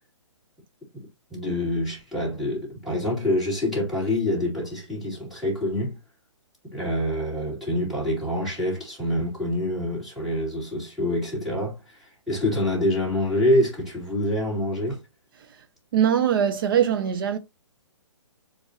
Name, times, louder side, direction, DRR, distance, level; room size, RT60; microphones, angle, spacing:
voice 1, 1.3-6.0 6.7-15.0, left 1 dB, ahead, 2.4 m, -26 dB
voice 2, 15.9-17.4, right 9 dB, 45° right, 0.6 m, -21 dB
7.0 x 2.6 x 2.8 m
figure-of-eight pair, 130°, 16 cm